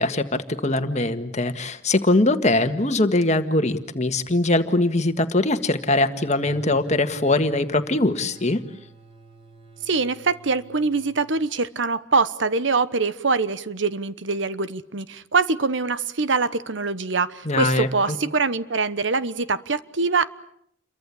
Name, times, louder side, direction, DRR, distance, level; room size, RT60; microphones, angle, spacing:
voice 1, 0.0-8.6 17.5-17.9, left 2 dB, 35° left, 9 dB, 1.7 m, -22 dB
sound 1, 6.4-11.4, right 2 dB, 30° right, 8.0 m, -48 dB
voice 2, 9.8-20.3, right 4 dB, 70° right, 14 dB, 1.1 m, -24 dB
29.0 x 23.5 x 8.5 m, 0.71 s
head